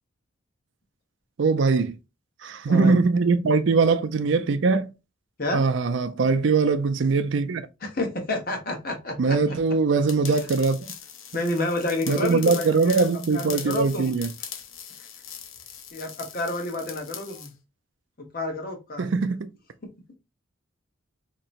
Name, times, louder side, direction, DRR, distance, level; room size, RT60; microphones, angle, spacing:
voice 1, 1.4-1.9 2.4-4.9 5.5-7.7 9.2-10.8 12.1-14.3 19.0-19.4, right 4 dB, 65° right, 0.4 m, -21 dB
voice 2, 2.7-3.0 5.4-5.6 7.8-9.6 11.3-14.1 15.9-17.5 18.3-19.1, left 2 dB, 45° left, 1.2 m, -29 dB
sound 1, 10.1-17.5, left 8 dB, 85° left, 0.7 m, -40 dB
4.3 x 2.9 x 2.5 m
head